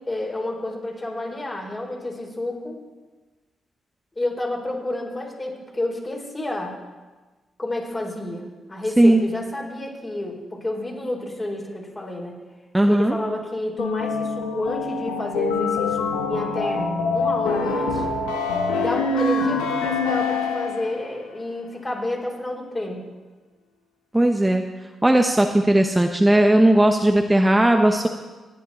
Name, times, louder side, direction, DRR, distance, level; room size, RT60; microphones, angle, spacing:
voice 1, 0.1-2.8 4.2-6.8 7.6-12.4 12.9-18.0 18.8-23.1, left 1 dB, 30° left, 0 dB, 4.4 m, -30 dB
voice 2, 12.7-13.1 24.1-24.6 25.0-28.1, right 1 dB, 15° right, 4 dB, 1.0 m, -17 dB
sound 1, 13.8-21.1, left 3 dB, 90° left, 1.2 m, -25 dB
17.5 x 10.0 x 4.3 m, 1.3 s
hypercardioid pair, 45°, 0 cm